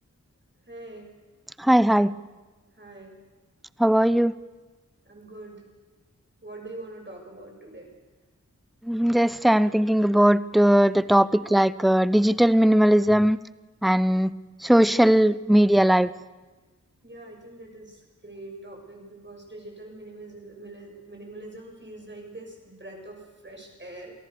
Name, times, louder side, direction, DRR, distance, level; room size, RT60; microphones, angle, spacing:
voice 1, 0.7-1.1 2.8-3.2 5.0-5.6 6.4-7.9 11.0-11.2 17.0-24.1, right 2 dB, 35° right, 1 dB, 6.7 m, -43 dB
voice 2, 1.6-2.1 3.8-4.3 8.8-13.4 13.8-14.3 14.6-16.1, equal, ahead, 17 dB, 0.6 m, -19 dB
28.0 x 18.0 x 6.8 m, 1.3 s
wide cardioid pair, 65°, 31 cm